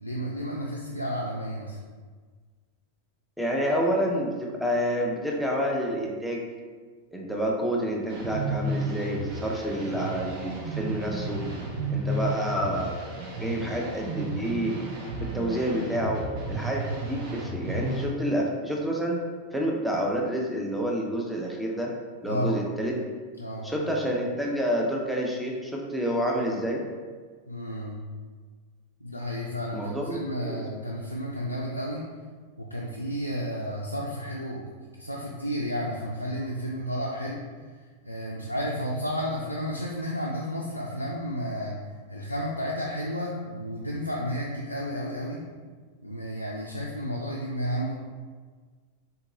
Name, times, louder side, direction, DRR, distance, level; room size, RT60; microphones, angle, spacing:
voice 1, 0.0-1.8 22.3-22.7 23.4-23.7 27.5-28.0 29.0-32.1 32.6-34.7 35.0-37.7 38.0-45.4 46.0-48.0, equal, 90° left, -4 dB, 0.3 m, -32 dB
voice 2, 3.4-6.4 7.1-11.4 11.9-12.9 13.4-14.7 15.3-19.2 19.5-21.9 22.2-22.9 23.6-26.8 29.7-30.6, equal, ahead, -2 dB, 0.5 m, -28 dB
sound 1, 8.1-18.1, right 2 dB, 50° right, 0.7 m, -33 dB
3.7 x 2.8 x 2.6 m, 1.5 s
figure-of-eight pair, 90°, 0 cm